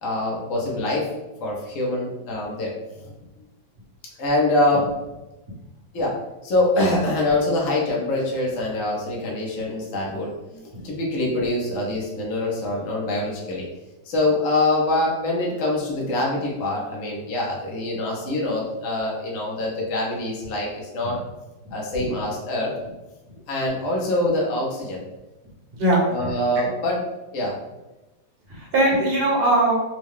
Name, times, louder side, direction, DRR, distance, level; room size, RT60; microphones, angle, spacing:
voice 1, 0.0-1.1 1.4-2.7 4.2-4.9 5.9-6.1 6.4-13.6 14.0-21.2 21.7-22.7 23.5-25.0 26.1-27.0 27.3-27.6, left 2 dB, 55° left, -3 dB, 1.0 m, -24 dB
voice 2, 25.8-26.7 28.5-29.9, right 1 dB, 40° right, -5 dB, 1.0 m, -21 dB
3.6 x 2.2 x 3.5 m, 1.0 s
omnidirectional pair, 2.0 m